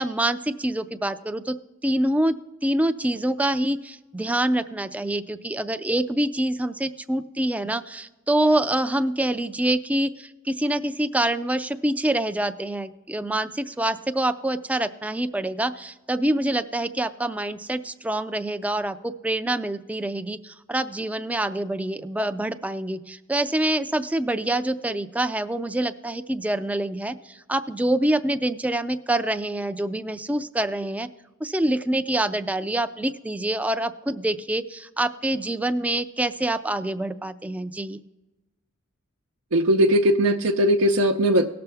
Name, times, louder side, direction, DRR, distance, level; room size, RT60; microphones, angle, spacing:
voice 1, 0.0-1.6 1.8-2.4 2.6-31.1 31.4-38.0, right 1 dB, 5° right, 10 dB, 0.3 m, -26 dB
voice 2, 39.5-41.5, equal, 85° right, 0 dB, 0.7 m, -19 dB
18.0 x 6.8 x 3.4 m, 1.1 s
head